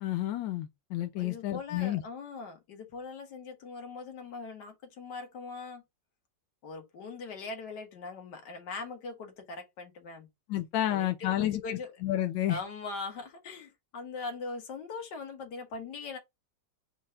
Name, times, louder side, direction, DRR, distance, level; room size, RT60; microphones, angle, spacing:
voice 1, 0.0-2.0 10.5-12.6, left 13 dB, 90° left, 1.3 m, -31 dB
voice 2, 1.2-5.8 6.6-10.3 10.9-11.9 12.5-16.2, left 4 dB, 65° left, 1.9 m, -41 dB
4.5 x 2.4 x 4.3 m
omnidirectional pair, 1.9 m